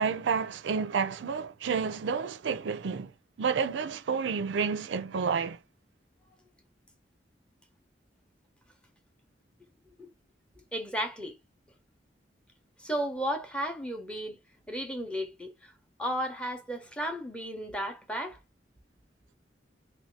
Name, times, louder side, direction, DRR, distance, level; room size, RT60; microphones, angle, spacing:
voice 1, 0.0-3.1 3.4-5.6, right 5 dB, 90° right, 0.4 m, -30 dB
voice 2, 10.7-11.4 12.8-14.4 14.7-15.7 16.0-18.4, equal, 5° left, 0.9 m, -34 dB
3.0 x 2.8 x 3.2 m
head